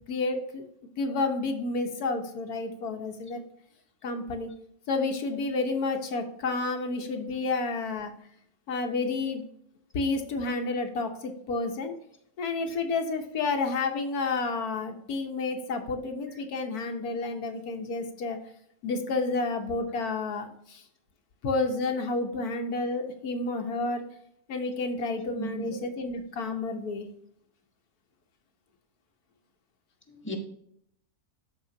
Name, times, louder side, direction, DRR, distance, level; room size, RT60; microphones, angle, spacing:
voice 1, 0.1-0.6 1.0-3.4 4.0-4.5 4.9-8.1 8.7-9.4 9.9-11.9 12.4-18.4 18.8-20.8 21.4-24.0 24.5-27.1, left 3 dB, 75° left, 4 dB, 1.5 m, -30 dB
voice 2, 25.2-25.9 30.1-30.4, right 2 dB, 10° left, 0 dB, 1.2 m, -38 dB
13.0 x 4.3 x 2.7 m, 0.71 s
omnidirectional pair, 1.6 m